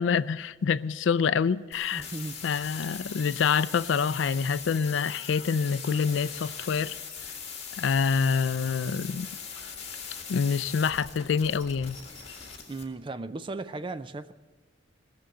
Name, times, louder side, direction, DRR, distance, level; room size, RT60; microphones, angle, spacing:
voice 1, 0.0-2.0 2.4-7.0 7.8-9.3 10.3-12.0, left 6 dB, 70° left, 0.4 m, -26 dB
sound 1, 1.7-12.8, left 6 dB, 35° left, 1.8 m, -40 dB
voice 2, 1.9-2.4 12.7-14.3, right 2 dB, 25° right, 0.4 m, -36 dB
19.5 x 6.8 x 7.7 m
head